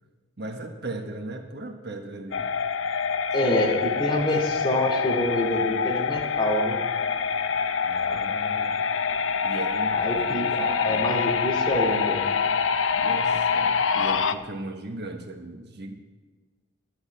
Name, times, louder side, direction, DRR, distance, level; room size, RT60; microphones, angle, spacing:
voice 1, 0.4-2.5 3.4-3.7 7.8-8.8 9.4-11.1 12.4-12.6 12.9-15.9, right 2 dB, 60° right, 4 dB, 1.3 m, -37 dB
sound 1, 2.3-14.3, left 6 dB, 75° left, 0.6 m, -26 dB
voice 2, 3.3-6.8 10.0-12.2, left 1 dB, 25° left, -2 dB, 2.5 m, -26 dB
12.0 x 8.0 x 8.1 m, 1.4 s
head